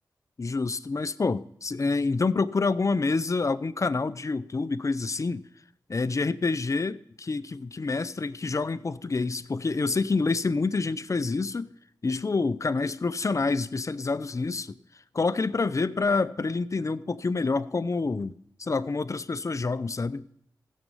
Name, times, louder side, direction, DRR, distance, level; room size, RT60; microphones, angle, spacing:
voice 1, 0.4-5.4 5.9-11.7 12.0-14.8 15.1-20.3, left 3 dB, 45° left, 0.6 m, -27 dB
16.0 x 7.5 x 5.5 m
cardioid pair, 45°, 7 cm